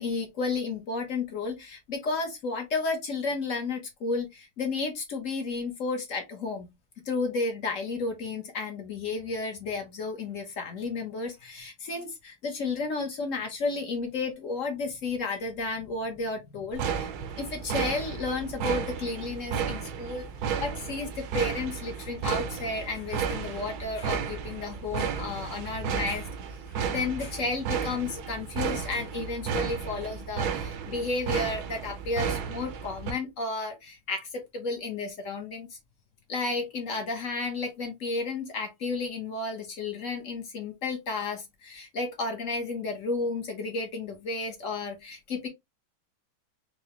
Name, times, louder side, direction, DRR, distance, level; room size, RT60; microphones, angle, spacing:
voice 1, 0.0-6.7 7.0-17.1 17.4-20.3 20.6-26.3 26.9-35.8 36.3-45.5, left 3 dB, 50° left, 1.0 m, -32 dB
sound 1, 16.7-33.1, right 7 dB, 65° right, 1.0 m, -33 dB
4.8 x 2.2 x 3.0 m
omnidirectional pair, 2.3 m